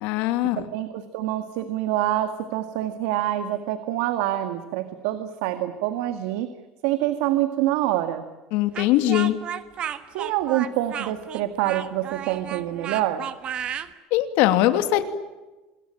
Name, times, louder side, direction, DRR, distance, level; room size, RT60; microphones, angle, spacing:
voice 1, 0.0-0.7 8.5-9.4 14.1-15.0, left 14 dB, 65° left, 9 dB, 2.7 m, -21 dB
voice 2, 0.6-6.5 6.8-8.2 10.1-13.3, right 13 dB, 80° right, 9 dB, 2.0 m, -26 dB
Speech, 8.7-13.9, right 9 dB, 35° right, 1.5 m, -33 dB
27.0 x 21.5 x 9.0 m, 1.1 s
cardioid pair, 165°, 3 cm